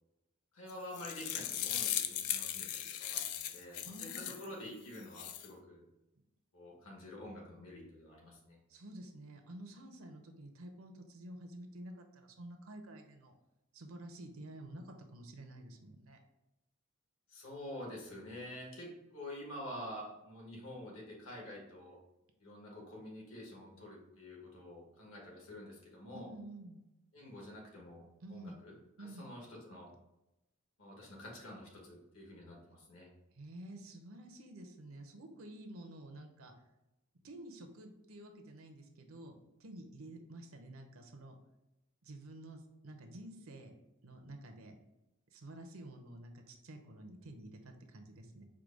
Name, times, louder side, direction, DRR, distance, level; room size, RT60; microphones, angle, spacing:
voice 1, 0.5-5.9 6.5-8.6 17.3-22.0 22.4-26.3 27.1-29.9 30.8-33.1, left 1 dB, 70° left, -2 dB, 1.5 m, -48 dB
sound 1, 0.7-4.5 4.9-5.5, left 11 dB, 85° left, 0.4 m, -38 dB
voice 2, 3.9-4.4 8.7-13.3 13.7-16.2 26.1-26.8 28.2-28.6 29.0-29.3 33.3-36.5 37.2-39.3 39.6-41.4 42.0-43.7 44.0-44.7 45.3-48.4, right 1 dB, 70° right, 5 dB, 0.7 m, -50 dB
4.8 x 2.2 x 4.8 m, 0.93 s
head